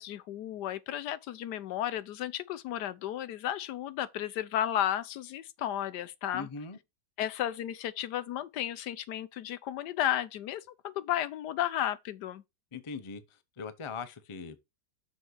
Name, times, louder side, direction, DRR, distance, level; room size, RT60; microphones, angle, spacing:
voice 1, 0.0-6.5 7.2-12.4, left 11 dB, 75° left, 1.2 m, -33 dB
voice 2, 6.3-6.8 12.7-14.6, left 5 dB, 35° left, 0.5 m, -41 dB
6.5 x 4.0 x 6.3 m
omnidirectional pair, 1.9 m